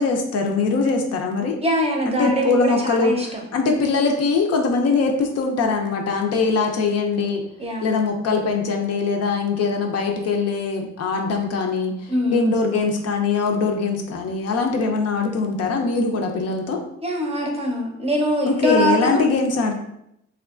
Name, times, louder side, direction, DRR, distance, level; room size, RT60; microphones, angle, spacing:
voice 1, 0.0-1.6 2.1-3.1 3.5-7.4 7.8-16.8 18.5-19.7, left 4 dB, 55° left, 3 dB, 0.5 m, -22 dB
voice 2, 1.6-3.4 7.6-7.9 12.1-12.5 17.0-19.2, equal, 20° right, 1 dB, 0.6 m, -23 dB
3.4 x 2.3 x 2.4 m, 0.79 s
cardioid pair, 90°, 30 cm